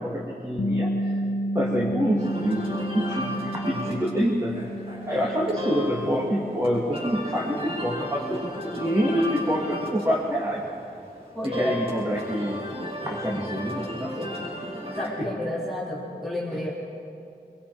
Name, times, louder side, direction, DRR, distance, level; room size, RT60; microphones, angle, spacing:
voice 1, 0.0-1.2 1.5-4.7 5.1-8.4 8.7-10.7 11.4-12.7 13.0-14.5 15.2-15.3 16.5-16.6, equal, 20° right, -3 dB, 2.7 m, -27 dB
Bass guitar, 0.6-6.8, equal, 60° left, 1.1 m, -31 dB
sound 1, 2.2-15.1, left 1 dB, 35° right, 5.8 m, -35 dB
voice 2, 11.4-11.8 14.9-16.7, left 1 dB, ahead, -6 dB, 3.3 m, -30 dB
23.0 x 23.0 x 5.2 m, 2.5 s
wide cardioid pair, 50°, 16 cm